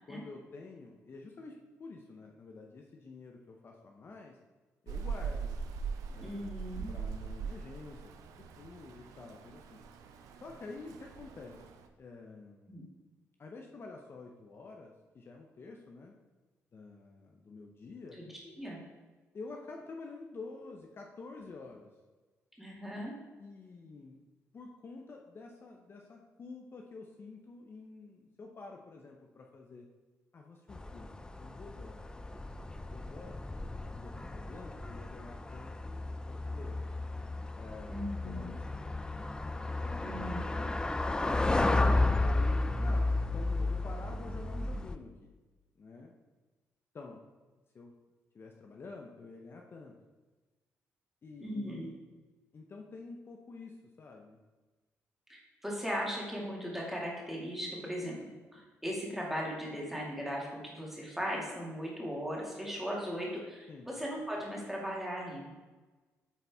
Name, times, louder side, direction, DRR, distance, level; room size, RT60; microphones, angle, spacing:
voice 1, 0.1-4.4 4.8-5.6 6.1-8.1 8.4-9.8 10.4-11.6 12.0-12.7 13.4-16.1 16.7-18.2 19.3-21.9 23.4-24.2 24.5-29.9 30.3-32.4 32.7-33.4 33.8-36.9 37.5-38.9 39.8-40.9 41.8-45.3 45.8-46.2 46.9-47.2 47.7-47.9 48.3-50.0 51.2-51.9 52.5-54.4 63.7-63.9, left 3 dB, 45° left, 1 dB, 0.7 m, -49 dB
Rain, 4.9-11.9, right 5 dB, 90° right, 0.5 m, -41 dB
voice 2, 6.2-6.9 12.7-12.9 18.2-18.3 18.6-18.8 22.6-23.1 37.9-38.6 40.0-40.5 51.4-51.9 55.3-65.5, equal, 5° right, -3 dB, 2.1 m, -38 dB
sound 1, 30.7-45.0, left 2 dB, 15° left, 0.4 m, -33 dB
8.3 x 4.1 x 3.5 m, 1.3 s
cardioid pair, 80°, 6 cm